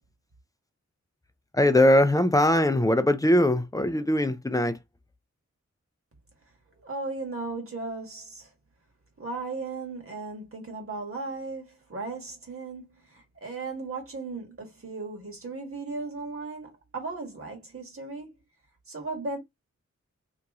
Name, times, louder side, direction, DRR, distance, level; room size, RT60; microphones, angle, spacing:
voice 1, 1.5-4.8, left 1 dB, 10° left, 0.5 m, -21 dB
voice 2, 6.8-8.5 9.2-12.9 13.1-18.3 18.9-19.4, right 3 dB, 50° right, 1.6 m, -36 dB
3.0 x 2.7 x 3.5 m
wide cardioid pair, 100°, 29 cm